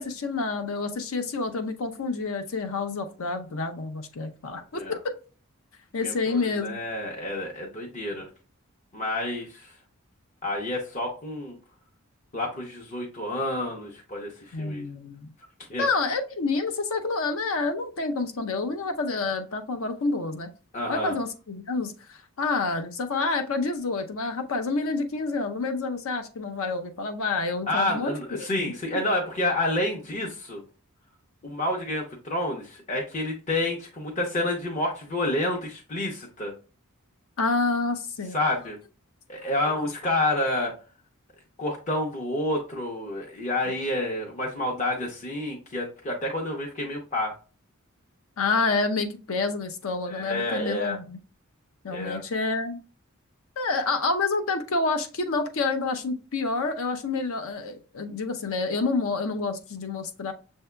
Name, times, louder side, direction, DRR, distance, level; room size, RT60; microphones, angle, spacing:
voice 1, 0.0-5.0 5.9-6.8 14.5-15.3 15.8-20.5 20.9-28.7 37.4-38.4 39.4-39.7 48.4-51.2 51.8-52.8 53.6-60.3, left 3 dB, 70° left, 0.6 m, -28 dB
voice 2, 6.0-8.3 8.9-9.7 10.4-11.5 12.3-14.8 15.7-15.8 20.7-21.1 27.7-30.6 31.4-36.5 38.3-38.8 39.3-40.7 41.6-47.3 50.1-51.0 51.9-52.2, left 1 dB, 35° left, 0.7 m, -29 dB
6.5 x 2.7 x 2.2 m
head